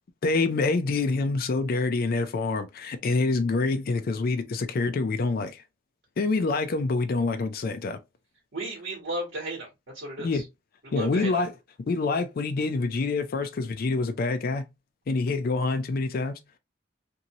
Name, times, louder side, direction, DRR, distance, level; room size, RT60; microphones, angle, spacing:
voice 1, 0.2-5.6 6.2-8.0 10.2-10.4 10.9-11.5 11.9-14.7 15.1-16.4, left 3 dB, 50° left, 0.4 m, -26 dB
voice 2, 8.5-9.7 9.9-10.4 10.8-11.4, right 1 dB, 60° right, 1.4 m, -34 dB
2.7 x 2.6 x 2.9 m
head